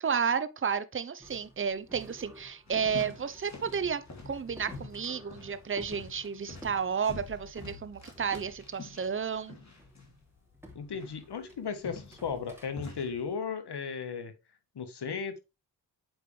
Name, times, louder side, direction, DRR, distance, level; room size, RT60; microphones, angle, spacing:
voice 1, 0.0-9.6, right 6 dB, 30° right, 0.8 m, -32 dB
sound 1, 1.2-7.7 8.0-9.4 9.8-10.0 10.5-12.7, equal, 5° right, 2.9 m, -52 dB
sound 2, 2.7-13.3, left 3 dB, 40° left, 2.8 m, -48 dB
voice 2, 10.7-14.3 14.7-15.4, left 6 dB, 65° left, 1.4 m, -35 dB
7.9 x 5.0 x 3.3 m
cardioid pair, 50°, 43 cm